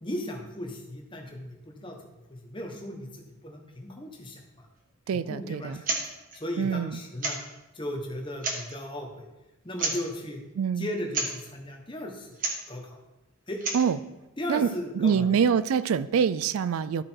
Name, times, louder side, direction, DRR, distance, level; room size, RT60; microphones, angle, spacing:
voice 1, 0.0-2.0 2.3-4.4 5.1-5.9 6.3-7.4 7.7-9.3 9.6-10.4 10.8-12.3 12.7-13.0 13.5-13.6 14.4-15.4, left 1 dB, 20° left, 2 dB, 1.1 m, -36 dB
voice 2, 5.1-5.8 6.6-7.0 10.6-10.9 13.7-14.0 14.5-14.7 14.9-17.0, right 7 dB, 75° right, 16 dB, 0.3 m, -25 dB
sound 1, 5.8-6.0 6.3-6.4 7.2-7.6 8.3-8.8 9.8-10.1 11.1-11.4 12.3-12.7 13.5-13.9, right 3 dB, 40° right, 1.3 m, -30 dB
13.0 x 4.7 x 4.5 m, 1.0 s
head